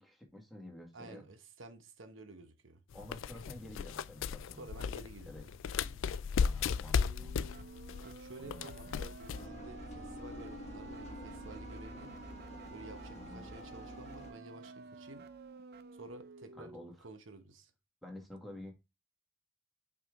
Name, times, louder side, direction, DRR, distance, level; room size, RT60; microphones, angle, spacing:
voice 1, 0.0-1.2 2.9-4.7 5.3-5.5 6.4-7.7 8.4-9.0 13.1-13.5 16.6-17.0 18.0-18.7, left 1 dB, ahead, 1.8 m, -50 dB
voice 2, 0.9-2.8 4.6-6.0 8.0-12.2 12.7-15.3 15.9-16.7 17.0-17.7, right 2 dB, 75° right, 1.0 m, -52 dB
sound 1, 2.9-9.5, left 6 dB, 80° left, 0.4 m, -36 dB
sound 2, 6.9-16.9, right 4 dB, 55° right, 0.5 m, -51 dB
Engine, 9.3-14.3, left 1 dB, 35° left, 1.2 m, -48 dB
6.0 x 5.0 x 3.6 m
head